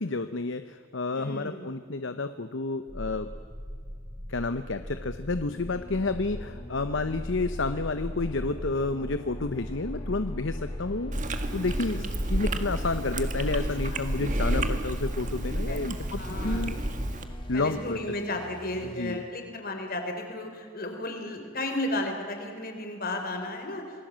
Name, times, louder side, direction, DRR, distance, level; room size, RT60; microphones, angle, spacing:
voice 1, 0.0-3.3 4.3-16.8 17.5-18.0 19.0-19.2, left 3 dB, 60° left, 10 dB, 0.9 m, -30 dB
voice 2, 1.1-1.7 11.8-12.1 13.9-14.0 15.7-15.8 16.2-16.7 17.5-23.8, left 1 dB, 45° left, 4 dB, 4.1 m, -34 dB
sound 1, 2.9-17.5, equal, 10° right, 3.7 m, -39 dB
sound 2, 4.8-19.0, left 1 dB, 25° left, 1.9 m, -46 dB
Chewing mastication, 11.1-17.2, right 1 dB, 35° right, 1.6 m, -30 dB
27.5 x 20.0 x 7.6 m, 2.3 s
head